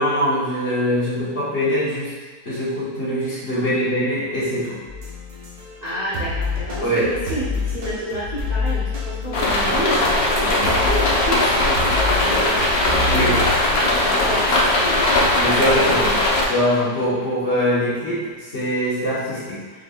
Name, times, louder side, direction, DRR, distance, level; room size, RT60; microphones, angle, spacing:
voice 1, 0.0-2.1 2.4-4.8 6.8-7.1 13.1-13.5 13.7-13.8 15.3-16.0 16.5-19.6, equal, 40° left, -10 dB, 1.4 m, -22 dB
sound 1, 4.9-10.3 10.6-13.5, left 3 dB, 80° right, 1.6 m, -28 dB
voice 2, 5.8-12.6 13.0-13.3 13.6-14.5 14.8-15.1 15.7-16.2, right 1 dB, 40° right, -10 dB, 0.5 m, -30 dB
sound 2, 9.3-16.4, left 1 dB, 75° left, 0.5 m, -19 dB
5.1 x 3.5 x 2.3 m, 1.3 s
omnidirectional pair, 1.9 m